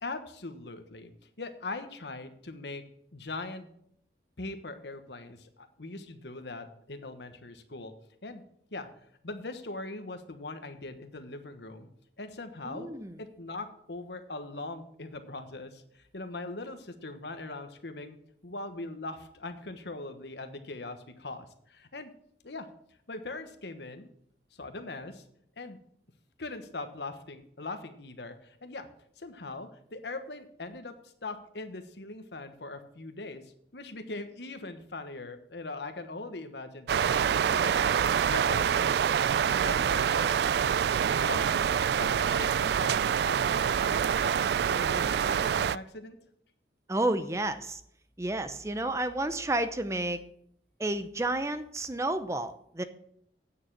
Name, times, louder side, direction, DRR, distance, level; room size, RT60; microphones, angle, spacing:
voice 1, 0.0-1.1 1.4-2.8 3.1-3.7 4.4-7.9 8.2-8.4 8.7-8.9 9.2-11.9 12.2-12.9 13.2-18.2 18.4-22.1 22.4-22.7 23.1-24.1 24.5-25.2 25.6-25.8 26.4-28.9 29.2-30.9 31.2-37.1 37.5-37.8 38.3-39.0 39.6-40.3 41.3-46.2, left 2 dB, 75° left, 8 dB, 1.2 m, -41 dB
voice 2, 12.7-13.1 46.9-47.8 48.2-50.2 50.8-52.8, right 2 dB, 15° right, 11 dB, 0.6 m, -31 dB
sound 1, 36.9-45.8, right 8 dB, 70° right, 0.3 m, -26 dB
9.1 x 6.8 x 7.4 m, 0.69 s
head